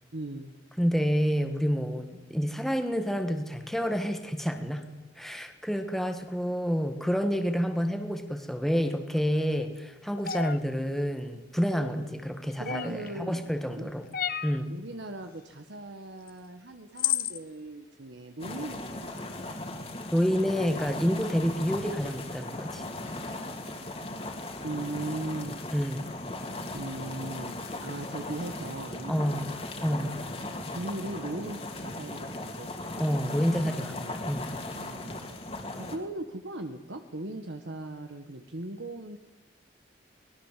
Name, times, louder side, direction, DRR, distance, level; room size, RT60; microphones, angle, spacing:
voice 1, 0.1-0.5 12.6-13.9 14.7-19.5 24.6-25.7 26.7-29.3 29.8-30.3 30.7-32.7 33.7-34.3 34.7-39.2, right 2 dB, 75° right, 6 dB, 1.5 m, -39 dB
voice 2, 0.8-4.9 5.1-14.1 14.4-14.7 20.1-22.8 25.7-26.1 29.1-29.5 29.8-30.1 33.0-34.5, equal, ahead, 6 dB, 1.6 m, -28 dB
sound 1, 10.2-10.6 12.6-13.1 14.1-14.6 16.3-16.4 17.0-17.4, left 9 dB, 50° left, 1.0 m, -30 dB
sound 2, 18.4-36.0, left 2 dB, 30° left, 2.6 m, -38 dB
24.5 x 20.5 x 7.5 m, 1.1 s
head